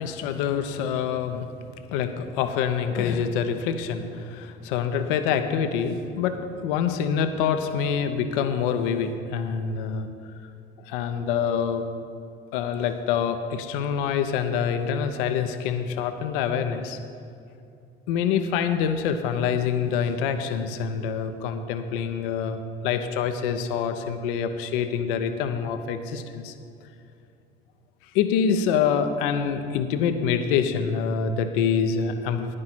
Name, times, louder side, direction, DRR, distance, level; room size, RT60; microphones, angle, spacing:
voice 1, 0.0-1.5 1.9-10.1 10.8-11.8 12.5-17.0 18.1-26.5 28.1-32.6, left 7 dB, 65° left, 8 dB, 0.7 m, -26 dB
10.5 x 9.7 x 4.3 m, 2.5 s
figure-of-eight pair, 55°, 30 cm